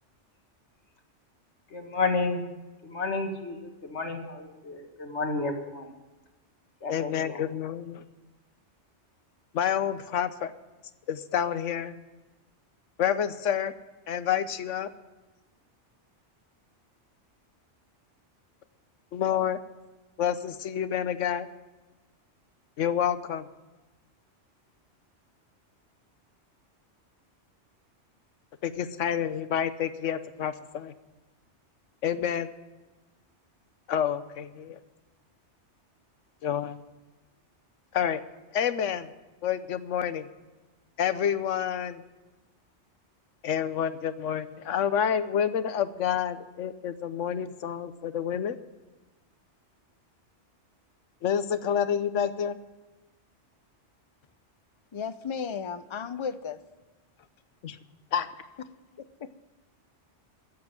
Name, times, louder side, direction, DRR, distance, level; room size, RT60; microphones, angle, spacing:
voice 1, 1.7-2.4 2.8-5.9 6.8-7.5, left 3 dB, 70° left, 2.1 m, -31 dB
voice 2, 6.9-8.0 9.5-10.5 11.1-11.9 13.0-13.7 14.1-14.9 19.1-19.6 20.2-21.5 22.8-23.5 28.6-30.9 32.0-32.5 33.9-34.8 36.4-36.8 37.9-38.2 38.5-39.1 39.4-40.3 41.0-42.0 43.4-48.6 51.2-52.6 57.6-57.8 58.1-58.3, left 9 dB, 85° left, 1.2 m, -28 dB
voice 3, 54.9-56.6 59.2-59.3, left 6 dB, 35° left, 0.5 m, -34 dB
14.5 x 7.9 x 9.0 m
omnidirectional pair, 1.2 m